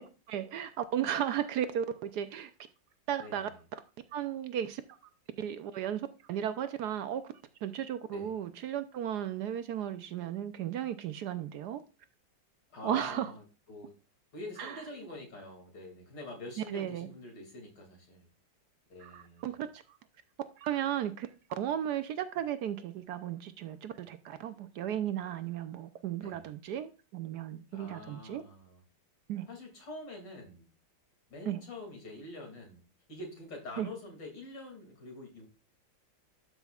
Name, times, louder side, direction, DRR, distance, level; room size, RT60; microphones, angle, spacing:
voice 1, 0.3-2.5 3.1-3.8 4.1-4.8 5.4-7.2 7.6-11.8 12.8-13.3 14.6-14.8 16.7-17.1 19.0-19.8 20.6-21.3 21.6-28.4 29.3-29.5 31.5-31.6 33.8-33.9, right 10 dB, 70° right, 1.1 m, -35 dB
voice 2, 3.2-3.5 8.1-8.3 12.7-13.9 14.3-18.3 18.9-19.6 26.2-26.4 27.7-28.8 29.5-30.7 31.3-32.8 33.1-35.5, left 2 dB, 70° left, 3.3 m, -46 dB
12.5 x 5.6 x 2.4 m
omnidirectional pair, 2.0 m